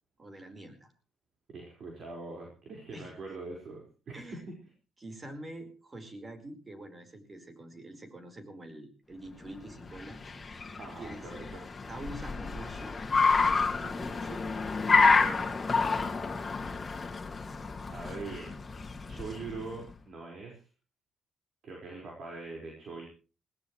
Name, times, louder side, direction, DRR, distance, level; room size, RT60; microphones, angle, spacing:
voice 1, 0.2-0.9 2.9-3.1 4.1-4.5 5.0-10.2 11.0-11.3 11.9-13.0 13.7-14.5 15.1-16.1, right 1 dB, 25° right, 7 dB, 4.5 m, -45 dB
voice 2, 1.5-4.6 10.8-11.6 17.9-18.6 19.1-20.6 21.6-23.1, right 3 dB, 55° right, 0 dB, 5.1 m, -42 dB
Car, 9.6-19.8, left 4 dB, 30° left, 2.5 m, -29 dB
20.5 x 18.0 x 3.3 m, 0.35 s
cardioid pair, 90°, 0 cm